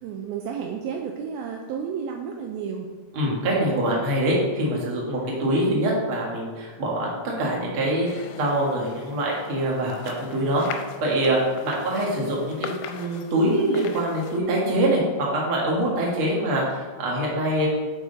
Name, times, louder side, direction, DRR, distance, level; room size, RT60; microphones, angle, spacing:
voice 1, 0.0-2.9, right 7 dB, 85° right, 2 dB, 2.1 m, -32 dB
voice 2, 3.1-7.1 7.4-17.7, right 1 dB, 50° right, -3 dB, 1.7 m, -24 dB
sound 1, 8.1-14.4, left 7 dB, 90° left, 2.8 m, -40 dB
9.8 x 4.8 x 4.0 m, 1.4 s
omnidirectional pair, 4.8 m